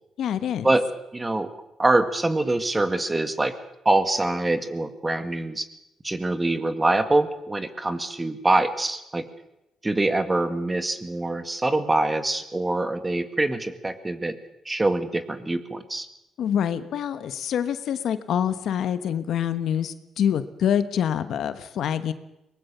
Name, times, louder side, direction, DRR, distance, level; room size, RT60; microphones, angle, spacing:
voice 1, 0.2-0.7 16.4-22.1, left 9 dB, 70° left, 11 dB, 1.2 m, -26 dB
voice 2, 1.1-1.5 1.8-3.5 3.9-5.7 6.0-9.2 9.8-14.4 14.7-16.1, right 2 dB, 20° right, 10 dB, 2.0 m, -24 dB
22.5 x 20.5 x 6.9 m, 0.87 s
cardioid pair, 90°, 0 cm